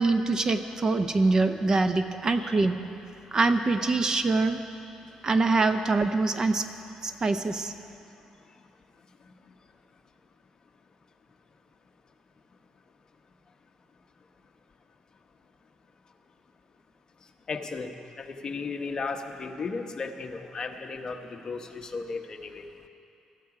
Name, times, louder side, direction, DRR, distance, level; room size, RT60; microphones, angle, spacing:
voice 1, 0.0-2.8 3.3-4.6 5.2-6.7 7.0-7.7, right 3 dB, 30° right, 9 dB, 0.6 m, -24 dB
voice 2, 17.5-17.9 18.2-22.6, left 4 dB, 35° left, 5 dB, 0.9 m, -35 dB
18.0 x 13.5 x 4.9 m, 2.7 s
cardioid pair, 125°, 2 cm